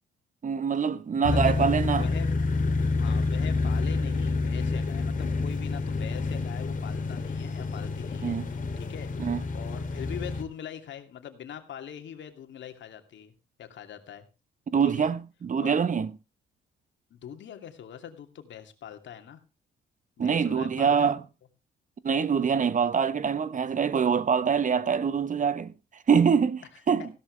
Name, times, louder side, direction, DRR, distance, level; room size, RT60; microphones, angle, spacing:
voice 1, 0.4-2.1 8.2-8.5 9.2-9.4 14.7-16.1 20.2-21.2 22.0-25.7 26.1-27.1, right 6 dB, 40° right, 1.0 m, -24 dB
voice 2, 1.2-2.3 2.9-8.4 8.8-9.1 9.5-13.3 13.6-14.2 14.9-15.1 15.6-15.7 17.1-19.4 20.2-21.1 27.0-27.1, left 9 dB, 65° left, 2.7 m, -42 dB
sound 1, 1.2-10.4, left 3 dB, 40° left, 2.9 m, -28 dB
16.0 x 11.5 x 3.3 m
cardioid pair, 90°, 20 cm